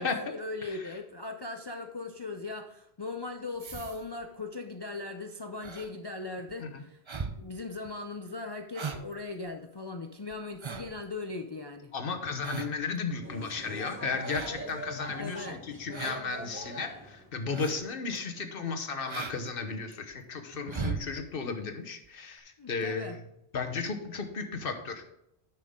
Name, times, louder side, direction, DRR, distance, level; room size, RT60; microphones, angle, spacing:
voice 1, 0.0-7.0 7.3-11.9 15.2-15.6 22.6-23.2, left 3 dB, 35° left, 5 dB, 0.4 m, -39 dB
voice 2, 0.6-0.9 6.6-6.8 11.9-23.2 23.5-25.0, left 4 dB, 60° left, 5 dB, 1.2 m, -34 dB
sound 1, 3.6-4.3 5.6-5.9 6.4-6.5 7.1-7.4 7.8-7.9 8.3-8.4 8.7-9.1 9.5-9.6 10.3-11.0 12.4-12.8 14.2-14.7 15.9-16.2 16.6-16.7 17.5-17.9 18.2-18.3 19.1-19.4 19.7-20.1 20.5-21.1 22.0-22.1 22.4-22.5, right 5 dB, 35° right, 0.6 m, -38 dB
sound 2, 13.2-17.3, equal, 10° right, 1.5 m, -42 dB
10.0 x 5.9 x 3.6 m, 0.82 s
omnidirectional pair, 1.0 m